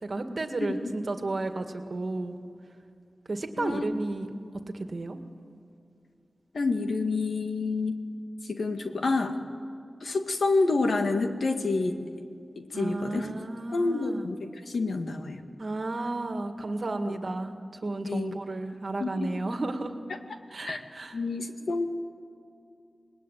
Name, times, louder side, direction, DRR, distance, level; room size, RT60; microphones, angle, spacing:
voice 1, 0.0-2.4 3.3-4.3 4.7-5.2 12.7-14.3 15.6-20.0 20.5-21.2, right 2 dB, 50° right, 6 dB, 2.0 m, -33 dB
voice 2, 6.5-7.9 8.5-9.3 10.0-12.0 12.7-13.3 13.7-14.4 14.7-15.4 18.1-18.4 19.0-19.3 20.6-20.8 21.1-21.9, left 3 dB, 80° left, 5 dB, 1.9 m, -28 dB
27.0 x 20.5 x 9.4 m, 2.4 s
wide cardioid pair, 100°, 0 cm